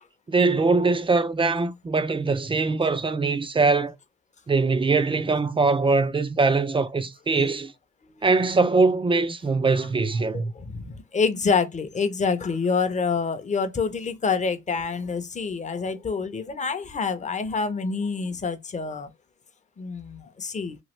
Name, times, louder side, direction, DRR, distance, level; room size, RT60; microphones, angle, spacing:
voice 1, 0.3-3.9 4.5-7.7 8.2-10.5, right 3 dB, 20° right, 0.3 m, -22 dB
voice 2, 10.3-19.1 19.8-20.8, left 5 dB, 25° left, 0.6 m, -27 dB
3.0 x 2.3 x 3.0 m
cardioid pair, 90°, 30 cm